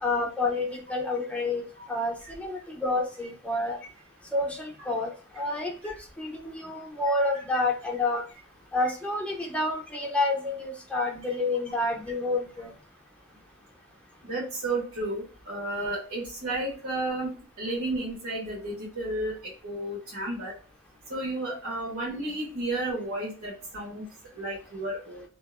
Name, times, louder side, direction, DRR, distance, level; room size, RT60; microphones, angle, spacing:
voice 1, 0.0-3.8 4.3-8.2 8.7-12.7, left 2 dB, 5° left, -1 dB, 0.6 m, -29 dB
voice 2, 14.2-19.3 19.6-20.5 21.1-24.0 24.4-25.2, right 2 dB, 80° right, -5 dB, 1.3 m, -32 dB
2.8 x 2.5 x 2.4 m, 0.38 s
head